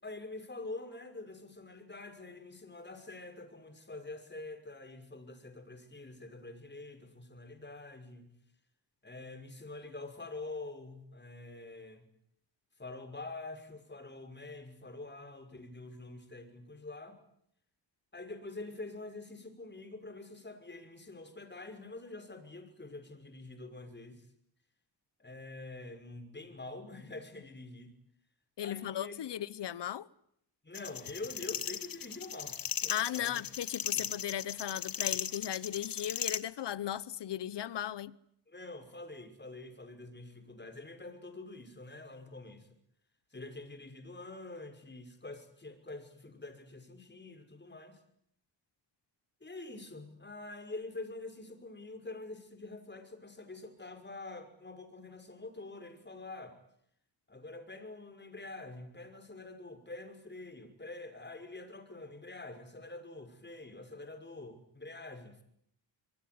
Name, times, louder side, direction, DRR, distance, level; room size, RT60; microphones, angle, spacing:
voice 1, 0.0-8.3 9.0-12.1 12.8-17.2 18.1-24.3 25.2-27.9 28.6-29.2 30.6-33.4 33.9-34.1 38.5-42.7 43.3-48.0 49.4-56.6 57.3-65.4, left 2 dB, 25° left, 5.9 m, -46 dB
voice 2, 28.6-30.1 32.9-38.2, left 11 dB, 70° left, 1.1 m, -36 dB
sound 1, 30.8-36.4, left 8 dB, 50° left, 1.4 m, -37 dB
26.0 x 23.0 x 9.7 m
wide cardioid pair, 105°, 43 cm